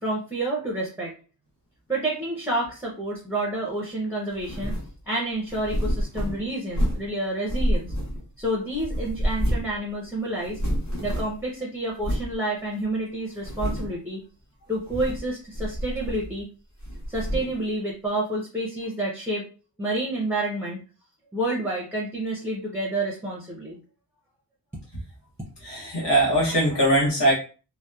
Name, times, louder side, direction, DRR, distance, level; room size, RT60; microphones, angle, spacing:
voice 1, 0.0-1.1 1.9-4.7 5.1-7.9 8.4-10.6 11.0-14.2 14.7-16.5 17.1-19.4 19.8-20.8 21.3-23.8, right 1 dB, 5° right, -3 dB, 0.6 m, -29 dB
sound 1, 4.4-4.9 5.5-7.1 7.5-8.4 8.8-9.8 10.0-10.1 10.4-11.5 12.0-12.3 12.8-12.9 13.4-14.0 14.8-15.3 15.5-16.4 16.8-17.6, equal, 45° left, 0.8 m, -28 dB
voice 2, 25.6-27.3, right 1 dB, 80° left, -5 dB, 1.0 m, -21 dB
2.8 x 2.1 x 2.3 m, 0.36 s
wide cardioid pair, 95°, 41 cm